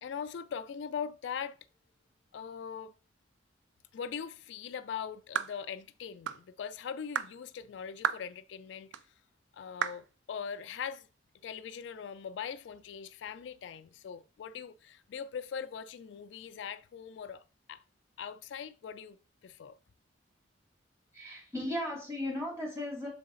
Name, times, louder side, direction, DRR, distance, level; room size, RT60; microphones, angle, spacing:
voice 1, 0.0-1.6 2.3-2.9 3.9-9.0 9.5-11.1 11.4-17.4 17.7-17.8 18.2-19.2 19.4-19.8, left 7 dB, 70° left, 0.3 m, -41 dB
sound 1, 5.3-5.6 6.3-6.4 7.1-7.3 8.0-8.3 8.9-9.0 9.8-10.0, right 8 dB, 70° right, 0.3 m, -32 dB
voice 2, 21.1-23.1, left 1 dB, 15° right, 2.6 m, -36 dB
6.4 x 3.8 x 3.8 m
head